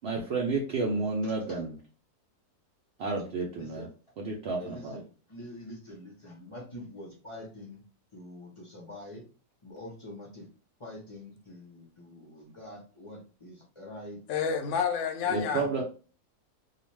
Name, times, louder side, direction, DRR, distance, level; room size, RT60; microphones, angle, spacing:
voice 1, 0.0-1.8 3.0-3.9 4.2-5.0 15.3-15.8, right 3 dB, 80° right, 0.5 m, -31 dB
voice 2, 3.5-3.9 4.6-5.0 5.3-7.8 8.1-9.2 9.6-10.4 10.8-14.2 15.2-15.7, left 1 dB, 35° left, 0.5 m, -45 dB
voice 3, 14.3-15.8, left 6 dB, 65° left, 0.8 m, -29 dB
2.4 x 2.3 x 3.1 m
omnidirectional pair, 1.7 m